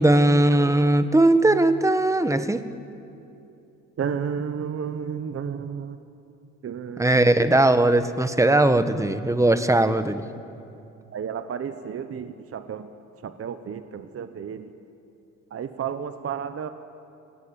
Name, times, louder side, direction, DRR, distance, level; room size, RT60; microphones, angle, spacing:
voice 1, 0.0-2.6 7.0-10.2, right 2 dB, 10° right, 10 dB, 1.3 m, -19 dB
voice 2, 4.0-6.0 6.6-7.2 11.1-12.9 13.2-14.6 15.5-16.7, right 7 dB, 50° right, 10 dB, 1.1 m, -32 dB
27.5 x 18.5 x 8.9 m, 2.7 s
cardioid pair, 90°, 30 cm